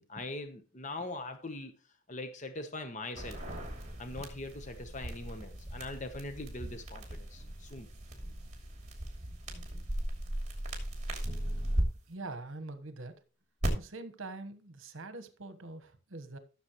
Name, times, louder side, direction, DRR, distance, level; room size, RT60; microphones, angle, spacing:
voice 1, 0.0-1.7 2.1-3.4 4.0-7.9, left 2 dB, 35° left, 1.0 m, -42 dB
sound 1, 3.2-11.8 13.6-13.7, right 1 dB, 30° right, 2.9 m, -37 dB
voice 2, 12.1-13.2 13.7-16.4, right 2 dB, 65° right, 1.2 m, -44 dB
15.0 x 7.1 x 3.0 m
head